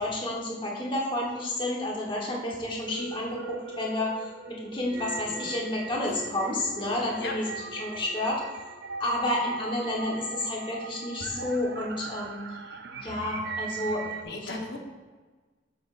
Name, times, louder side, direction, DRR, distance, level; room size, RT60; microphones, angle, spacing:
voice 1, 0.0-7.5 7.8-8.4 9.0-14.1 14.4-14.5, left 1 dB, 25° left, -3 dB, 1.2 m, -30 dB
sound 1, 2.7-14.2, right 4 dB, 60° right, 0.4 m, -39 dB
voice 2, 14.2-14.8, left 2 dB, 55° left, 1 dB, 1.0 m, -36 dB
7.7 x 6.7 x 2.5 m, 1.4 s
head